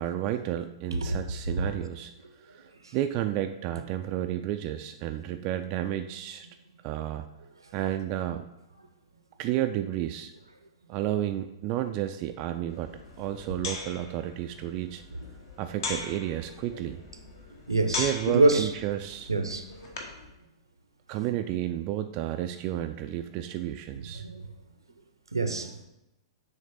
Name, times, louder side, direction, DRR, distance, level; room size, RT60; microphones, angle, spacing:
voice 1, 0.0-2.1 2.4-2.6 2.9-6.5 6.8-7.3 7.7-8.5 9.4-10.3 10.9-12.9 13.2-15.0 15.6-17.0 18.0-19.3 21.1-24.2, right 12 dB, 35° right, 0.3 m, -31 dB
sound 1, 12.7-20.3, left 4 dB, 55° left, 1.1 m, -40 dB
voice 2, 17.5-18.7 19.3-19.9 24.2-24.4 25.3-25.7, right 2 dB, 80° right, 0.7 m, -26 dB
7.0 x 3.2 x 4.9 m
figure-of-eight pair, 105°, 2 cm